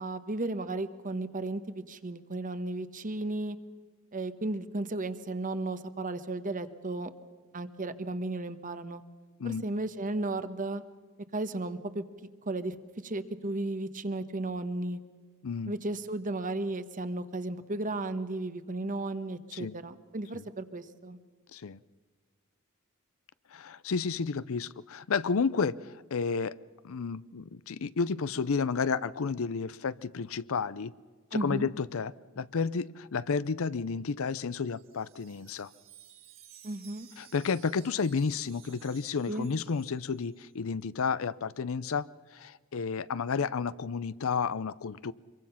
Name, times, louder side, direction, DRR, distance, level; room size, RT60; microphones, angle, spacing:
voice 1, 0.0-3.6 4.1-7.1 7.5-9.0 9.4-10.8 11.3-12.0 12.5-12.7 13.0-15.0 15.7-21.2 31.3-31.7 36.6-37.1 39.3-39.5, right 2 dB, 40° right, 11 dB, 1.2 m, -34 dB
voice 2, 23.5-25.8 26.1-26.5 26.8-30.9 31.4-35.7 37.2-42.1 42.3-45.1, left 5 dB, 65° left, 18 dB, 0.6 m, -31 dB
Wind chime, 34.3-40.5, right 11 dB, 65° right, 2.5 m, -57 dB
25.5 x 23.0 x 5.8 m, 1.5 s
head